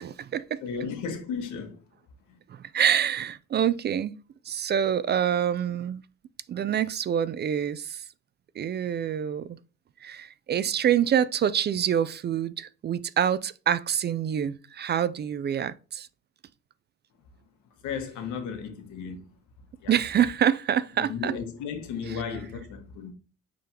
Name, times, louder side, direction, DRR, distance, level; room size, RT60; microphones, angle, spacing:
voice 1, 0.0-0.6 2.5-4.1 4.5-6.0 6.5-8.0 8.6-9.6 10.0-16.1 19.9-21.3 22.1-22.2, right 9 dB, 35° right, 0.4 m, -26 dB
voice 2, 0.6-1.8 2.3-2.4 17.8-19.3 19.8-20.0 21.0-23.1, left 6 dB, 80° left, 1.6 m, -34 dB
8.5 x 3.9 x 2.9 m
cardioid pair, 110°, 30 cm